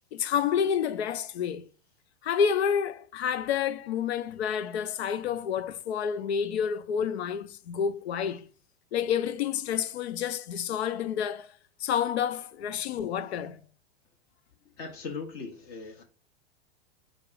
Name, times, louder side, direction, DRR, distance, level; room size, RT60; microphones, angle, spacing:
voice 1, 0.1-1.7 2.2-8.5 8.9-11.5 11.8-13.6, left 8 dB, 70° left, 0.6 m, -29 dB
voice 2, 14.8-16.0, left 4 dB, 45° left, 1.2 m, -39 dB
6.4 x 2.6 x 3.0 m
hypercardioid pair, 100°, 33 cm